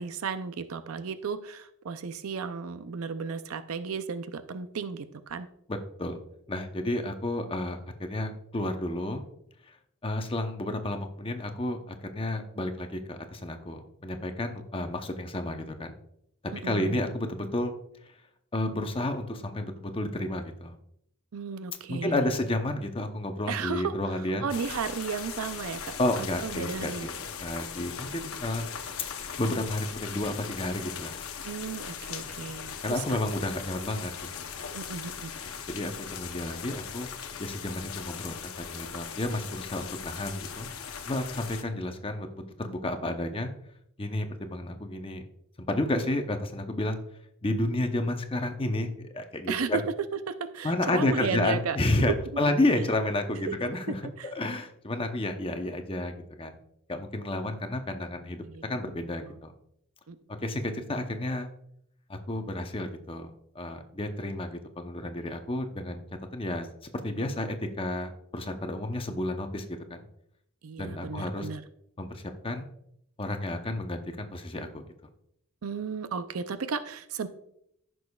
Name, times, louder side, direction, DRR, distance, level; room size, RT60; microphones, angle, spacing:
voice 1, 0.0-5.5 16.5-17.0 21.3-22.3 23.5-27.1 31.4-33.2 34.7-35.3 49.5-49.8 50.1-51.8 54.2-54.3 57.4-57.5 58.4-58.7 59.2-59.4 60.1-60.2 70.6-71.6 75.6-77.3, right 5 dB, 85° right, 11 dB, 0.5 m, -34 dB
voice 2, 6.5-9.2 10.0-15.9 16.6-17.7 18.5-20.7 21.9-24.4 26.0-28.7 29.4-31.1 32.4-32.5 32.8-34.1 34.4-34.5 35.7-37.1 37.4-40.7 41.0-43.5 44.0-45.2 45.6-47.0 47.4-49.8 50.6-54.0 54.3-56.6 56.9-58.4 58.7-59.5 60.4-61.5 62.1-66.0 66.3-66.7 67.0-67.5 67.7-70.0 70.8-71.5 72.0-72.7 73.2-74.8, left 1 dB, 25° left, 6 dB, 0.8 m, -31 dB
sound 1, 24.5-41.6, left 7 dB, 80° left, 0.8 m, -39 dB
14.5 x 6.3 x 2.3 m, 0.74 s
head